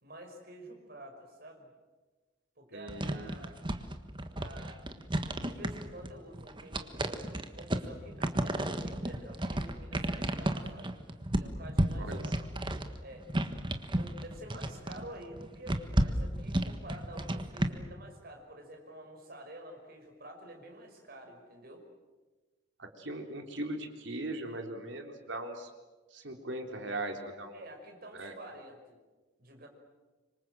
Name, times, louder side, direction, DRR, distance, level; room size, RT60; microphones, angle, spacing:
voice 1, 0.0-1.7 2.6-3.7 4.4-4.8 5.4-10.9 11.3-12.4 13.0-13.3 13.9-21.8 27.5-28.9 29.4-29.7, right 1 dB, 50° right, 3 dB, 5.7 m, -49 dB
voice 2, 2.7-3.3 12.0-12.3 22.8-25.7 26.1-27.6 28.2-28.3, right 1 dB, 70° right, 4 dB, 3.7 m, -39 dB
sound 1, 2.9-17.7, right 1 dB, 25° right, 1.5 m, -33 dB
26.5 x 24.5 x 7.8 m, 1.2 s
head